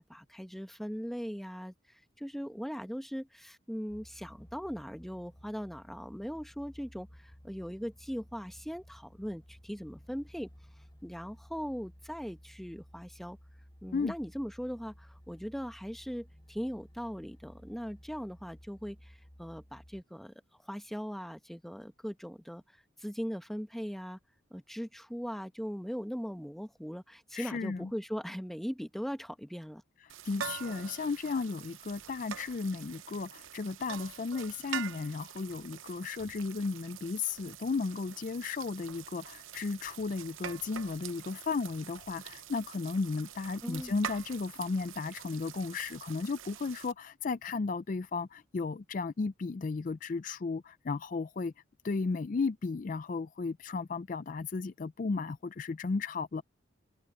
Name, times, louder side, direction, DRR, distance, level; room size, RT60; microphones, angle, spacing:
voice 1, 0.0-10.5 11.0-13.4 13.8-20.3 20.6-22.6 23.0-24.2 24.5-29.8 43.6-44.0, equal, ahead, 1.0 m, -40 dB
sound 1, 3.9-20.0, equal, 20° left, 2.8 m, -56 dB
voice 2, 27.3-27.9 30.2-51.5 51.8-56.4, left 4 dB, 40° left, 0.4 m, -34 dB
sound 2, 30.1-46.9, right 8 dB, 80° right, 0.8 m, -45 dB
open air
head